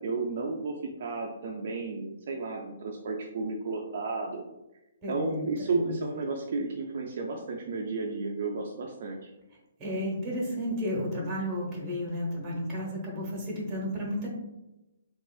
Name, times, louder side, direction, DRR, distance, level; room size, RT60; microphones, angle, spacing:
voice 1, 0.0-4.4 5.1-9.3, right 3 dB, 60° right, 1 dB, 0.4 m, -33 dB
voice 2, 5.0-6.0 9.8-14.3, equal, 20° right, -2 dB, 1.0 m, -33 dB
3.7 x 2.4 x 2.3 m, 0.95 s
hypercardioid pair, 155°, 0 cm